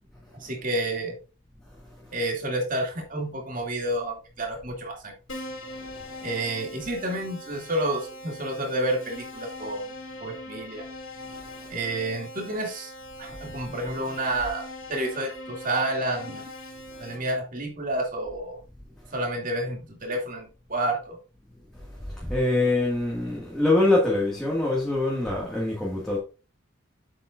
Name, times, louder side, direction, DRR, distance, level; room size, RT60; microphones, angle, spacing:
voice 1, 0.4-1.2 2.1-5.1 6.2-9.9 10.2-10.8 11.7-12.9 13.2-14.6 14.9-16.4 17.0-18.6 19.1-21.2, right 1 dB, 40° right, 2.5 m, -29 dB
Keyboard (musical), 5.3-17.2, left 1 dB, 80° left, 4.5 m, -41 dB
voice 2, 22.1-26.2, left 2 dB, 5° left, 1.9 m, -24 dB
8.3 x 7.7 x 2.5 m
head